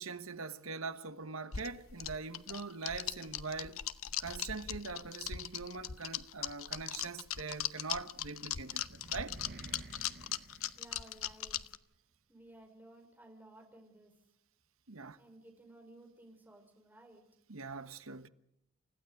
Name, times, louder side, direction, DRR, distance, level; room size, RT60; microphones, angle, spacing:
voice 1, 0.0-3.8 4.2-9.4 14.9-15.2 17.5-18.3, right 4 dB, 70° right, 1.3 m, -42 dB
sound 1, 1.5-11.8, left 11 dB, 70° left, 0.9 m, -39 dB
sound 2, 8.1-11.5, right 2 dB, 50° right, 0.9 m, -52 dB
voice 2, 10.7-11.6 12.3-14.2 15.1-17.3, right 1 dB, 10° right, 4.9 m, -57 dB
29.5 x 15.5 x 6.7 m
head